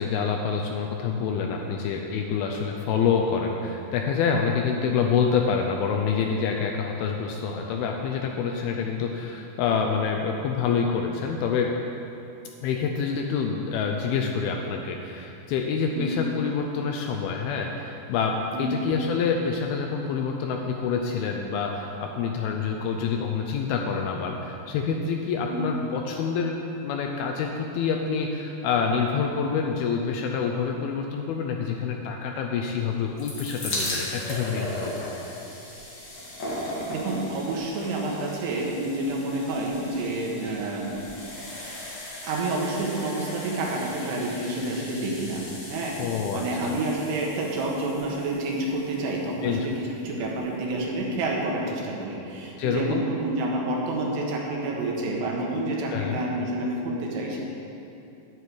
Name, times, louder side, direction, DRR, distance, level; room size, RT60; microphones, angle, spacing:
voice 1, 0.0-11.7 12.6-35.1 46.0-46.8 49.4-49.6 52.6-53.0 55.9-56.2, left 6 dB, 85° left, 2 dB, 2.3 m, -27 dB
sound 1, 32.9-50.0 50.7-50.8 51.0-51.1, left 1 dB, 40° left, 1.7 m, -37 dB
voice 2, 36.9-41.1 41.6-41.8 42.2-45.4 45.7-57.4, right 2 dB, 80° right, -2 dB, 3.4 m, -29 dB
9.6 x 9.0 x 4.7 m, 2.8 s
omnidirectional pair, 4.8 m